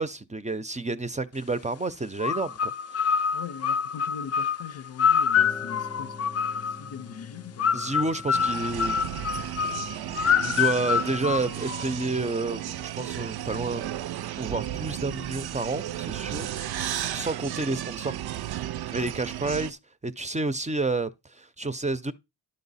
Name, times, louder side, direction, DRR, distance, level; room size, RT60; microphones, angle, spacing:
voice 1, 0.0-2.7 3.0-3.2 7.7-9.2 10.4-13.9 14.4-16.5 17.1-18.1 18.9-22.1, right 3 dB, 20° right, 0.5 m, -30 dB
sound 1, 2.2-6.9 7.6-12.0, left 7 dB, 45° left, 0.4 m, -26 dB
voice 2, 3.3-7.9, left 8 dB, 85° left, 0.7 m, -41 dB
sound 2, 5.3-13.0, left 2 dB, 15° left, 0.8 m, -47 dB
sound 3, 8.3-19.7, right 12 dB, 80° right, 0.5 m, -34 dB
11.0 x 5.3 x 4.1 m
wide cardioid pair, 90°, 37 cm